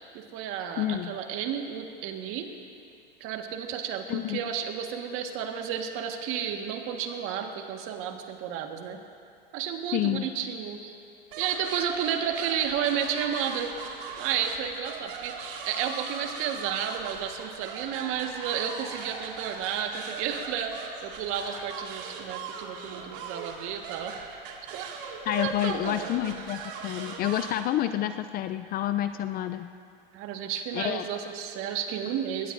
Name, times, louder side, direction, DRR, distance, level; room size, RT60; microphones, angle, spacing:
voice 1, 0.1-2.5 3.2-9.0 9.5-10.9 11.4-13.7 14.2-24.2 24.7-24.9 25.2-26.2 30.1-32.5, right 8 dB, 50° right, 4 dB, 1.6 m, -32 dB
voice 2, 0.8-1.2 4.1-4.4 9.9-10.3 25.2-29.7 30.7-31.1, left 12 dB, 30° left, 11 dB, 0.4 m, -29 dB
sound 1, 11.3-27.6, right 5 dB, 65° right, 2.1 m, -40 dB
21.0 x 17.5 x 2.6 m, 2.4 s
hypercardioid pair, 115°, 29 cm